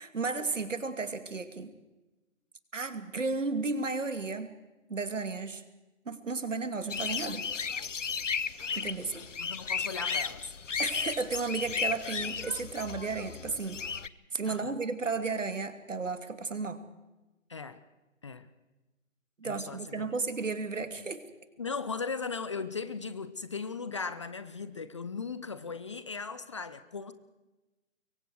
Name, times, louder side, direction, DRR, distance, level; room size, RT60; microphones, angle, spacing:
voice 1, 0.0-1.7 2.7-4.5 4.9-5.6 6.0-7.5 8.8-9.3 10.8-13.8 14.3-16.8 19.4-21.2, right 4 dB, 70° right, 10 dB, 2.7 m, -33 dB
sound 1, 6.9-14.1, left 6 dB, 70° left, 1.1 m, -34 dB
voice 2, 9.4-10.5 14.5-14.8 17.5-17.8 18.2-18.5 19.4-20.1 21.6-27.1, left 5 dB, 25° left, 13 dB, 0.6 m, -38 dB
26.0 x 23.0 x 4.8 m, 1.1 s
figure-of-eight pair, 145°, 39 cm